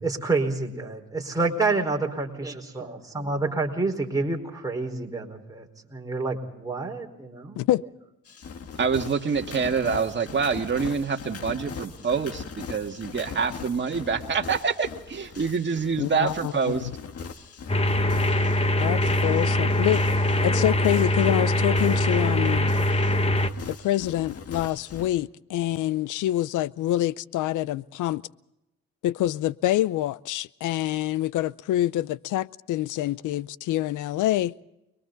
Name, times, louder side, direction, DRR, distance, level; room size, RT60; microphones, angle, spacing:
voice 1, 0.0-7.6, right 3 dB, 10° right, 4.7 m, -28 dB
sound 1, 8.3-25.1, left 6 dB, 50° left, 1.9 m, -40 dB
voice 2, 8.8-16.8, right 5 dB, 40° right, 2.1 m, -26 dB
voice 3, 16.0-16.5 16.8-16.9 18.8-20.0 20.4-22.7 23.7-28.2 29.0-34.5, left 14 dB, 85° left, 0.6 m, -26 dB
sound 2, 17.7-23.5, left 1 dB, 20° left, 1.3 m, -23 dB
30.0 x 22.5 x 4.0 m
cardioid pair, 90°, 30 cm